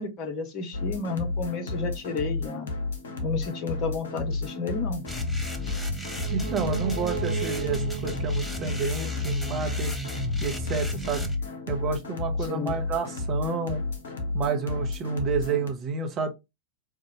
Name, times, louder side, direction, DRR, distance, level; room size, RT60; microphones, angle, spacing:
voice 1, 0.0-2.7 3.2-5.0 12.5-12.8, left 4 dB, 35° left, 0.8 m, -32 dB
sound 1, 0.7-15.7, left 3 dB, 65° left, 0.8 m, -32 dB
sound 2, 5.1-11.4, left 1 dB, 5° left, 0.6 m, -34 dB
sound 3, 6.1-9.8 10.1-10.2, right 11 dB, 65° right, 0.7 m, -37 dB
voice 2, 6.3-9.9 10.4-11.3 11.7-13.8 14.3-16.3, right 4 dB, 30° right, 0.9 m, -29 dB
4.1 x 2.4 x 2.9 m
figure-of-eight pair, 90°, 0 cm